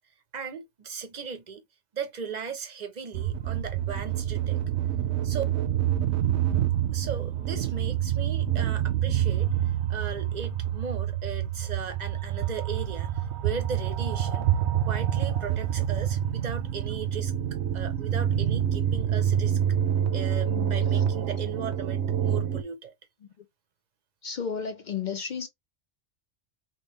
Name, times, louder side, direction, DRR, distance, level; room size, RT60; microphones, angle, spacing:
voice 1, 0.3-1.6 1.9-4.6 5.2-5.4 6.9-14.5 14.9-17.3 17.7-19.6 20.1-22.9, right 6 dB, 45° right, 0.7 m, -37 dB
sound 1, 3.1-22.6, right 10 dB, 80° right, 0.9 m, -27 dB
voice 2, 24.2-25.5, left 6 dB, 55° left, 0.5 m, -33 dB
3.3 x 3.0 x 3.0 m
omnidirectional pair, 1.1 m